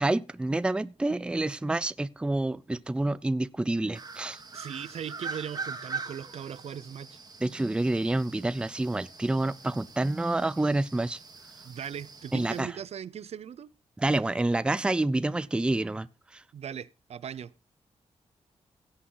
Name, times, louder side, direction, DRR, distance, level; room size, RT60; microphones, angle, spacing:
voice 1, 0.0-4.4 7.4-11.2 12.3-12.7 14.0-16.1 16.3-16.4, right 2 dB, 10° right, 0.4 m, -28 dB
sound 1, 3.9-12.6, right 4 dB, 35° right, 1.8 m, -43 dB
voice 2, 4.5-7.2 11.6-13.7 16.5-17.5, right 8 dB, 65° right, 0.5 m, -39 dB
16.5 x 6.3 x 3.8 m
wide cardioid pair, 135°, 11 cm